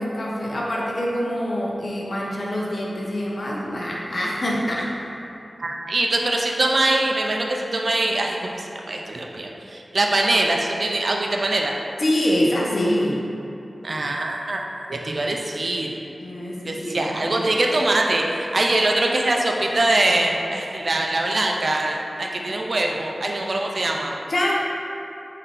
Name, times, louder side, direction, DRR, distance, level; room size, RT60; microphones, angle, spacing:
voice 1, 0.0-4.9 12.0-13.1 16.2-17.5 24.3-24.5, equal, 55° left, -4 dB, 0.6 m, -25 dB
voice 2, 5.6-11.7 13.8-14.6 14.9-15.9 16.7-24.1, right 2 dB, 60° right, 0 dB, 0.3 m, -23 dB
3.7 x 2.6 x 3.6 m, 2.8 s
wide cardioid pair, 65°, 0 cm